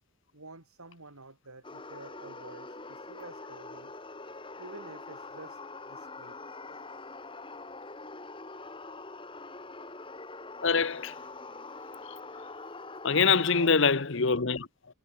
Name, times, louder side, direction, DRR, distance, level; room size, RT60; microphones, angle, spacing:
voice 1, 0.3-3.9 4.6-5.6 5.9-6.4 13.4-13.7, right 2 dB, 80° right, 4.6 m, -49 dB
sound 1, 1.6-13.7, left 3 dB, 25° left, 2.2 m, -44 dB
voice 2, 10.6-11.1 13.0-14.7, left 5 dB, 55° left, 1.0 m, -24 dB
head